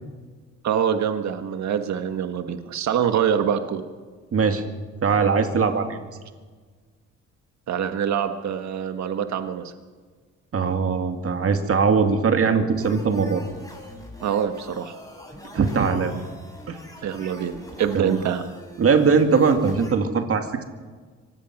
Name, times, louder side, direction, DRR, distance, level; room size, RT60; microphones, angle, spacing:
voice 1, 0.6-3.8 7.7-9.7 14.2-14.9 17.0-18.5, right 8 dB, 65° right, 8 dB, 1.5 m, -25 dB
voice 2, 4.3-4.6 5.0-6.0 10.5-13.4 15.5-16.2 16.7-16.8 17.9-18.1 18.8-20.6, right 5 dB, 50° right, 6 dB, 2.2 m, -21 dB
sound 1, 12.7-19.9, left 1 dB, 10° left, 5.8 m, -44 dB
24.5 x 19.0 x 6.0 m, 1.5 s
cardioid pair, 90°, 30 cm